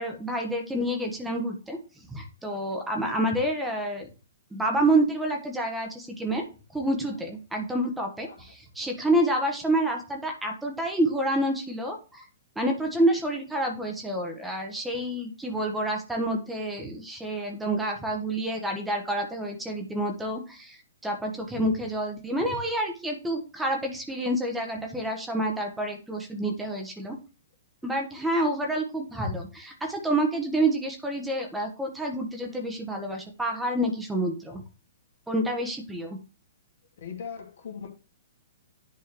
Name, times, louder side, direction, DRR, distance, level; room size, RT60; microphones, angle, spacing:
voice 1, 0.0-1.8 2.1-4.1 4.5-6.4 6.7-12.2 12.5-20.8 21.0-27.2 27.8-34.6 35.3-36.2, right 1 dB, 5° right, 1.5 m, -28 dB
voice 2, 37.0-37.9, left 6 dB, 60° left, 2.5 m, -40 dB
11.0 x 4.6 x 3.2 m
hypercardioid pair, 120°, 0 cm